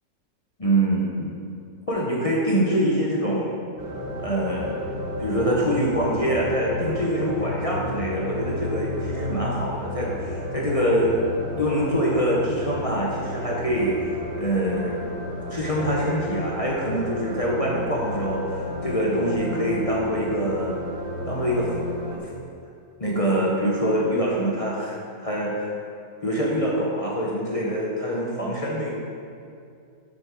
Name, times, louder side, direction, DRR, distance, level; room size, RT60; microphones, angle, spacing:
voice 1, 0.6-1.3 1.9-3.6 4.2-4.7 5.2-11.1 11.5-14.1 14.4-15.1 15.5-20.8 21.3-21.7 22.1-22.3 23.0-25.7 26.2-28.9, equal, 30° left, -5 dB, 0.7 m, -25 dB
sound 1, 3.8-22.2, left 1 dB, 75° right, 1.5 m, -32 dB
7.5 x 6.3 x 3.8 m, 2.4 s
omnidirectional pair, 1.6 m